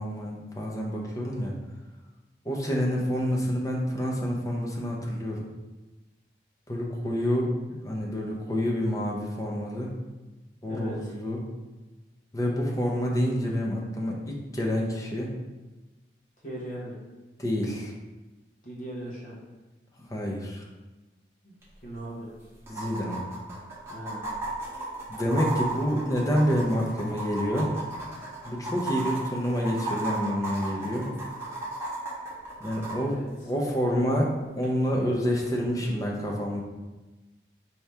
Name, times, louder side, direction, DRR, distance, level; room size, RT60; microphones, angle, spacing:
voice 1, 0.0-1.5 2.4-5.4 6.7-7.5 7.8-9.9 10.6-11.4 12.3-15.3 17.4-17.9 20.0-20.7 22.7-23.2 25.1-27.7 28.4-31.1 32.6-33.2 33.5-36.6, equal, 20° left, -2 dB, 0.6 m, -28 dB
voice 2, 10.7-11.1 16.4-17.0 18.6-19.4 21.4-21.6 21.8-22.3 23.9-24.2 32.9-33.3, right 1 dB, 45° left, -5 dB, 1.1 m, -38 dB
sound 1, 21.6-21.7 21.9-22.0 22.7-33.0 34.6-34.7, right 2 dB, 15° right, 1.0 m, -34 dB
4.6 x 2.8 x 3.5 m, 1.1 s
head